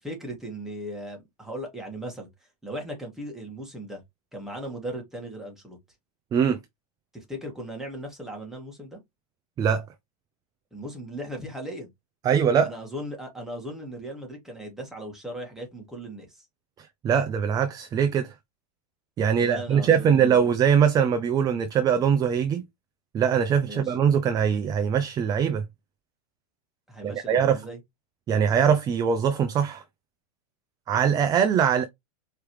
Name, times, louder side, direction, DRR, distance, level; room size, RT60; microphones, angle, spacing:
voice 1, 0.0-2.3 2.6-4.0 4.3-5.8 7.1-9.0 10.7-11.9 12.6-16.5 19.3-20.4 23.6-23.9 26.9-27.8, right 1 dB, ahead, 1.8 m, -37 dB
voice 2, 12.2-12.7 16.8-18.3 19.2-22.6 23.1-25.6 27.0-27.6 28.3-29.8 30.9-31.8, right 7 dB, 20° right, 0.4 m, -22 dB
4.7 x 3.3 x 3.1 m
hypercardioid pair, 130°, 20 cm